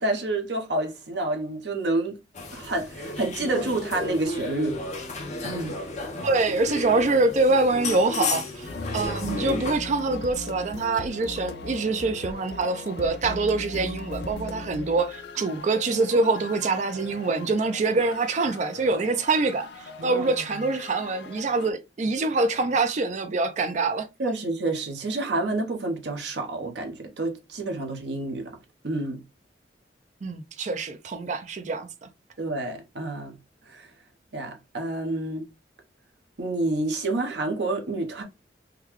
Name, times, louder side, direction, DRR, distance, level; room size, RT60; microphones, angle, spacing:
voice 1, 0.0-2.1 2.5-4.8 5.4-5.8 20.0-20.2 24.2-28.6 28.8-29.2 32.4-33.4 33.7-33.9 34.3-35.5 36.4-38.2, right 2 dB, 70° right, 0.9 m, -28 dB
sound 1, 2.3-9.7, left 3 dB, 40° left, 0.8 m, -33 dB
voice 2, 6.2-24.1 30.2-31.9, right 3 dB, 40° right, 0.4 m, -25 dB
sound 2, 8.7-21.7, left 3 dB, 65° left, 0.4 m, -39 dB
3.6 x 2.3 x 3.0 m
head